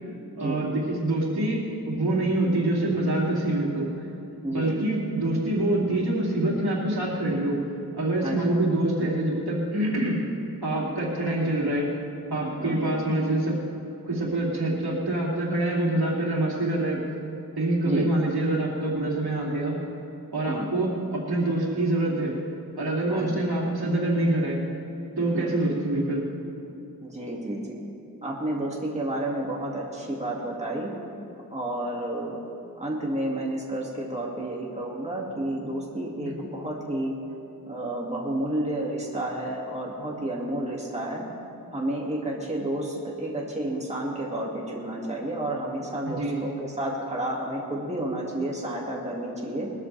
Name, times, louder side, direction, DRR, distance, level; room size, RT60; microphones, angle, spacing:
voice 1, 0.4-4.0 4.5-7.6 7.9-10.2 10.6-11.9 12.3-13.6 14.1-17.0 17.5-19.8 20.3-22.3 22.7-24.6 25.2-26.2 36.2-36.4 46.0-46.5, right 1 dB, 75° right, -4 dB, 2.9 m, -25 dB
voice 2, 4.4-4.7 8.2-8.5 12.6-12.8 17.8-18.1 20.5-20.7 23.1-23.4 25.3-25.6 27.0-27.8 28.2-30.9 31.5-32.4 32.8-37.1 37.7-41.3 41.7-49.7, right 1 dB, 15° right, -3 dB, 2.2 m, -31 dB
21.5 x 13.0 x 3.4 m, 2.6 s
wide cardioid pair, 85°, 38 cm